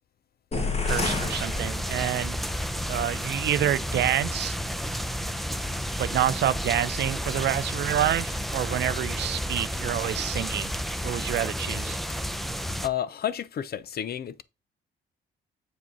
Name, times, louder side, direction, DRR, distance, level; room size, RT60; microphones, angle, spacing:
sound 1, 0.5-2.4, left 3 dB, 30° left, 1.6 m, -30 dB
voice 1, 0.8-2.4 2.9-4.6 6.0-10.7 11.0-12.0, right 11 dB, 65° right, 0.5 m, -28 dB
sound 2, 0.9-12.9, equal, ahead, 0.6 m, -31 dB
voice 2, 12.8-14.4, left 10 dB, 50° left, 0.6 m, -31 dB
7.4 x 4.9 x 4.0 m
cardioid pair, 90°, 20 cm